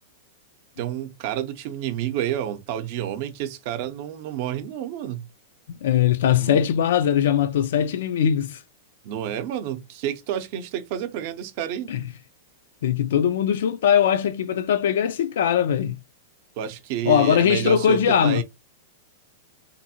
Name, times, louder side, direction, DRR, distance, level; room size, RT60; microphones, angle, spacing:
voice 1, 0.8-5.3 6.4-6.6 9.0-11.9 16.6-18.4, right 11 dB, 55° right, 0.6 m, -29 dB
voice 2, 5.8-8.6 11.9-12.0 12.8-16.0 17.0-18.4, left 9 dB, 70° left, 0.3 m, -20 dB
2.6 x 2.6 x 2.8 m
hypercardioid pair, 120°, 0 cm